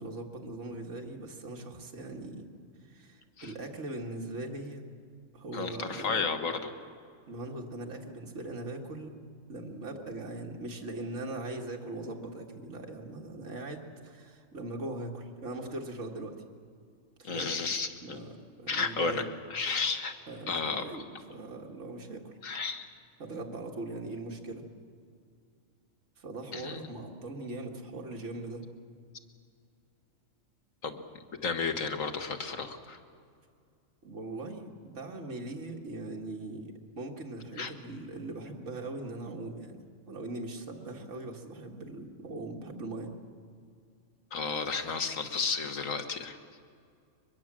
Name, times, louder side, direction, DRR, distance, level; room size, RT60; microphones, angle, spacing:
voice 1, 0.0-2.5 2.8-4.8 5.3-6.3 7.3-9.1 9.5-16.4 17.2-17.5 18.0-19.3 20.3-22.4 23.2-24.6 26.2-28.7 34.0-39.8 40.1-43.1, right 2 dB, 65° right, 1 dB, 2.2 m, -40 dB
voice 2, 5.5-6.6 17.2-18.2 18.7-19.3 19.5-20.1 20.5-20.8 22.4-22.9 26.5-26.8 30.8-31.0 31.4-33.0 37.6-37.7 44.3-46.4, left 5 dB, 85° left, 7 dB, 1.9 m, -32 dB
23.5 x 22.0 x 7.5 m, 2.3 s
omnidirectional pair, 1.3 m